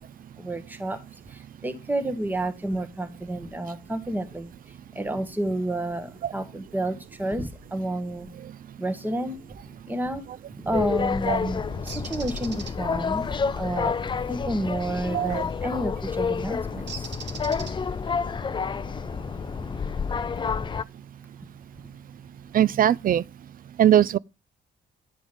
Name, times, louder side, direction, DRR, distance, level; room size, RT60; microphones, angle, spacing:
voice 1, 0.4-8.3 8.8-9.4 9.6-14.0 14.3-17.1 17.5-18.0 18.5-18.7 19.5-19.7 20.1-20.3 20.6-20.7 21.4-21.5, right 1 dB, 10° right, 1.3 m, -31 dB
sound 1, 10.7-20.8, left 5 dB, 25° left, 0.4 m, -29 dB
Bird, 11.9-12.7 15.3-15.6 16.9-18.1, right 6 dB, 60° right, 1.2 m, -39 dB
voice 2, 22.5-23.2 23.8-24.2, right 10 dB, 45° right, 0.4 m, -20 dB
9.7 x 5.1 x 5.3 m
cardioid pair, 90°, 20 cm